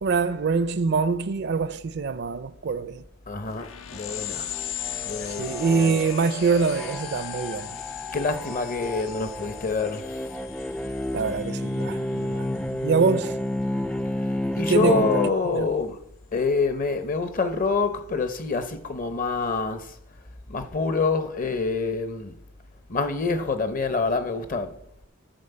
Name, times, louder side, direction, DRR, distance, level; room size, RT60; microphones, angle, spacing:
voice 1, 0.0-3.0 5.4-7.8 11.1-13.4 14.7-15.1 15.5-15.6, right 5 dB, 55° right, 0.5 m, -24 dB
voice 2, 3.3-4.5 5.0-6.0 8.1-10.3 14.1-16.0 16.3-20.0 20.5-22.3 22.9-24.8, left 4 dB, 45° left, 0.8 m, -26 dB
sound 1, 3.4-13.6, left 11 dB, 80° left, 0.6 m, -39 dB
sound 2, 4.0-15.3, left 1 dB, 5° left, 0.4 m, -31 dB
11.5 x 4.6 x 6.7 m
head